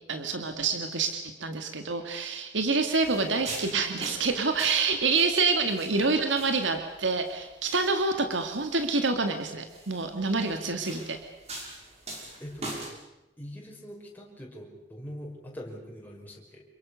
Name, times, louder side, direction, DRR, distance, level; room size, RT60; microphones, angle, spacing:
voice 1, 0.1-11.2, right 4 dB, 75° right, 6 dB, 2.2 m, -27 dB
sound 1, 3.0-12.9, right 1 dB, 35° right, 6.2 m, -43 dB
voice 2, 13.4-16.6, equal, 10° left, -2 dB, 5.7 m, -43 dB
28.0 x 23.0 x 6.5 m, 0.98 s
head